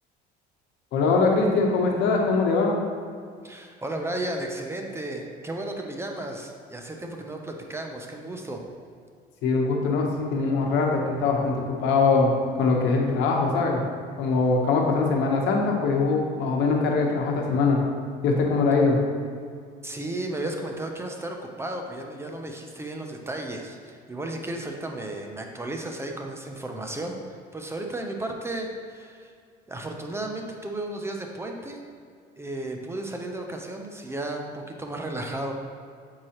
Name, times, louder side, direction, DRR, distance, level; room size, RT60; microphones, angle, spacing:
voice 1, 0.9-2.7 9.4-13.8 14.2-17.8 18.2-19.0, left 4 dB, 80° left, 1 dB, 1.0 m, -22 dB
voice 2, 3.4-8.6 19.8-29.3 29.7-31.8 32.4-35.5, right 1 dB, 15° right, 2 dB, 0.6 m, -34 dB
7.5 x 4.7 x 2.9 m, 2.2 s
cardioid pair, 110°, 19 cm